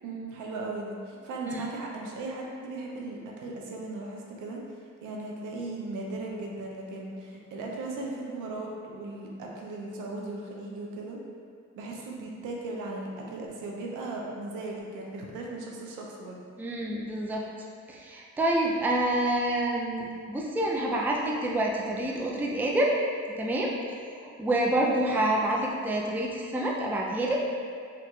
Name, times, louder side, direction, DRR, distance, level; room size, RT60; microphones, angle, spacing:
voice 1, 0.0-4.6 5.0-11.2 11.8-16.4, right 2 dB, 85° right, -1 dB, 0.6 m, -37 dB
voice 2, 16.6-17.5 17.9-23.0 23.4-23.8 24.2-27.4, right 1 dB, 5° right, -2 dB, 0.3 m, -27 dB
4.4 x 2.5 x 2.3 m, 2.3 s
cardioid pair, 90°, 30 cm